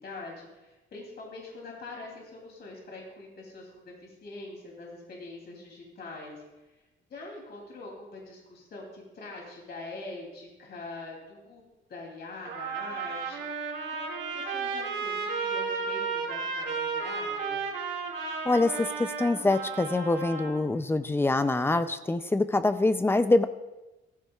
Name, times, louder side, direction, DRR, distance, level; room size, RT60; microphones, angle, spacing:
voice 1, 0.0-6.4 7.1-11.6 11.9-17.7, left 3 dB, 55° left, -1 dB, 3.0 m, -44 dB
Trumpet, 12.4-20.6, right 5 dB, 75° right, 2.1 m, -33 dB
voice 2, 18.5-23.5, left 2 dB, 10° left, 11 dB, 0.4 m, -25 dB
16.0 x 14.5 x 2.4 m, 1.1 s
cardioid pair, 150°, 20 cm